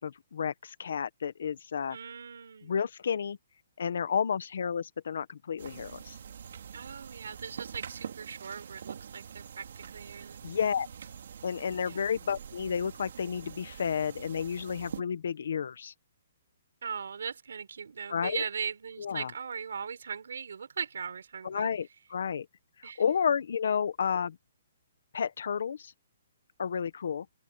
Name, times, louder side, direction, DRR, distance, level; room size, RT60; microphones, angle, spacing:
voice 1, 0.0-2.0 2.6-3.4 3.8-6.2 10.4-10.9 11.4-15.9 18.1-18.4 19.0-19.3 21.4-22.5 22.8-24.4 25.1-25.9 26.6-27.3, left 7 dB, 60° left, 1.5 m, -31 dB
voice 2, 1.9-2.8 6.7-10.4 11.8-12.1 16.8-21.7 22.8-23.0, right 6 dB, 75° right, 4.4 m, -39 dB
sound 1, 5.6-15.0, right 7 dB, 55° right, 2.9 m, -45 dB
open air
hypercardioid pair, 175°, 0 cm